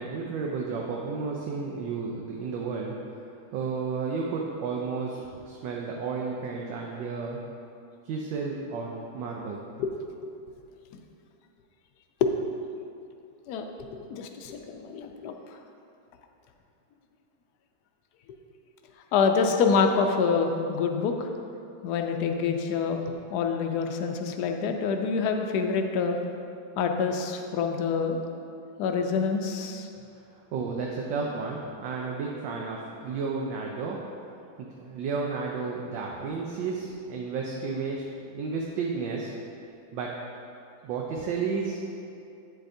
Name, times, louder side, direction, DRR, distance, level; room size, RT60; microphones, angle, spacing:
voice 1, 0.0-2.9 3.5-7.4 8.0-9.6 30.5-34.0 34.6-39.3 39.9-40.2 40.8-41.8, right 4 dB, 75° right, -1 dB, 1.3 m, -32 dB
voice 2, 13.5-15.6 19.1-21.3 21.8-23.0 23.3-26.2 26.8-28.2 28.8-29.9, left 5 dB, 70° left, 4 dB, 0.9 m, -26 dB
8.9 x 7.6 x 2.6 m, 2.6 s
omnidirectional pair, 2.2 m